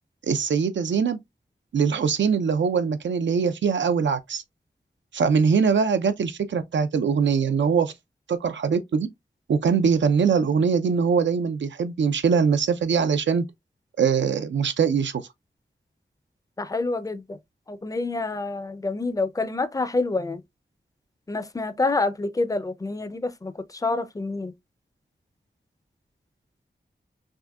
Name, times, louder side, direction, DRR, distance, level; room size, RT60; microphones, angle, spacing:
voice 1, 0.3-1.2 1.7-4.4 5.1-7.9 8.3-9.1 9.5-13.4 14.0-15.3, right 6 dB, 85° right, 0.4 m, -22 dB
voice 2, 16.6-17.4 17.7-20.4 21.3-24.5, left 3 dB, 20° left, 0.4 m, -27 dB
3.6 x 2.6 x 2.2 m
cardioid pair, 45°, 18 cm